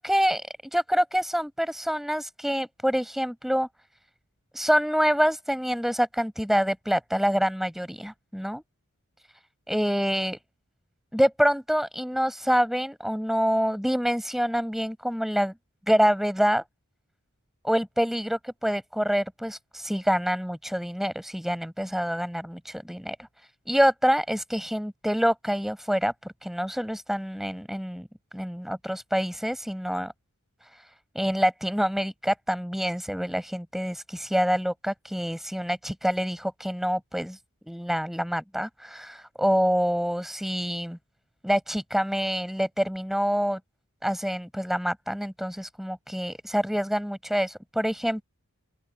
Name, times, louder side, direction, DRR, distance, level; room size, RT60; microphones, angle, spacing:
voice 1, 0.0-0.4 0.7-3.7 4.5-8.6 9.7-10.4 11.1-15.5 15.9-16.6 17.6-23.2 23.7-28.1 28.3-30.1 30.7-30.8 31.1-37.4 37.7-41.0 41.4-43.6 44.0-48.2, equal, ahead, 6.1 m, -26 dB
open air
head